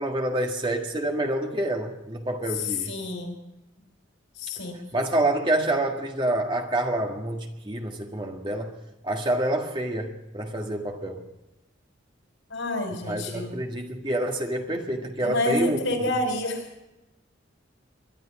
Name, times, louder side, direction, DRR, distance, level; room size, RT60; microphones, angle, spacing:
voice 1, 0.0-2.9 4.9-8.7 9.0-11.2 13.1-15.8, right 1 dB, 25° right, 2 dB, 1.8 m, -27 dB
voice 2, 2.6-3.4 4.4-4.8 12.5-13.5 15.2-16.7, left 2 dB, 85° left, 3 dB, 5.7 m, -28 dB
23.0 x 11.5 x 4.8 m, 0.95 s
head